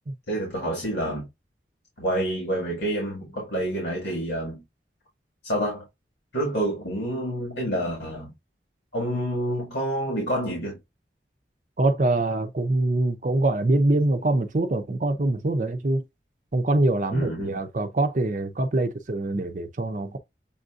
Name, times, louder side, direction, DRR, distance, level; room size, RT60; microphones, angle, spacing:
voice 1, 0.3-1.3 2.0-4.6 5.4-5.9 6.3-8.3 8.9-10.8 17.1-17.6, right 1 dB, 85° left, 2.0 m, -28 dB
voice 2, 11.8-16.0 16.5-20.2, right 2 dB, 45° right, 0.5 m, -24 dB
6.9 x 2.6 x 2.4 m
head